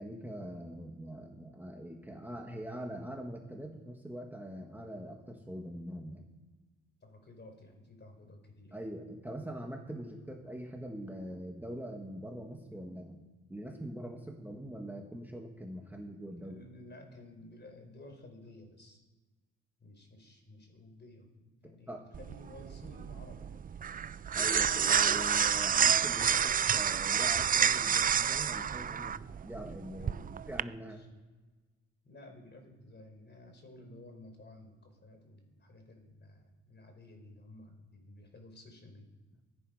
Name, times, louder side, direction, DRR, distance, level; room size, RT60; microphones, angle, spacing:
voice 1, 0.0-6.3 8.7-13.2 13.5-16.6 21.6-22.0 24.3-29.2 29.4-30.1 30.5-31.0, equal, 5° right, 1 dB, 2.1 m, -43 dB
voice 2, 7.0-8.8 16.4-19.0 19.8-23.6 29.9-30.4 30.9-31.1 32.0-39.1, left 1 dB, 35° left, 4 dB, 4.3 m, -53 dB
sound 1, 22.1-30.6, right 8 dB, 30° right, 0.4 m, -29 dB
23.5 x 11.0 x 5.1 m, 1.2 s
cardioid pair, 90°, 30 cm